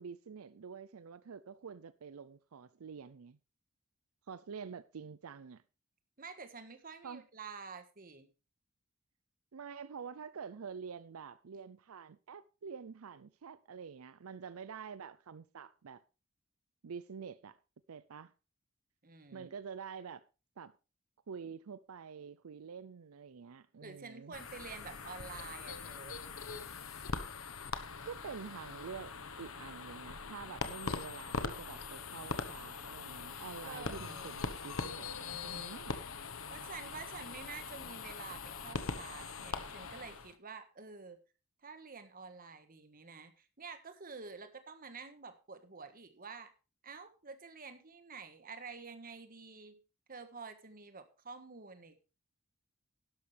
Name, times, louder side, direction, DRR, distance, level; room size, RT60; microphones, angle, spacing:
voice 1, 0.0-3.4 4.3-5.6 7.0-7.2 9.5-16.0 16.8-17.6 17.9-18.3 19.3-20.2 20.6-20.7 21.3-24.3 28.0-36.0, right 6 dB, 85° right, 0.5 m, -47 dB
voice 2, 6.2-8.3 19.0-19.5 23.8-26.2 33.6-34.4 36.5-41.2 41.6-46.5 46.8-49.8 50.1-52.0, right 4 dB, 45° right, 1.5 m, -49 dB
sound 1, 24.3-40.3, left 4 dB, 75° left, 1.2 m, -42 dB
11.5 x 11.5 x 3.4 m
head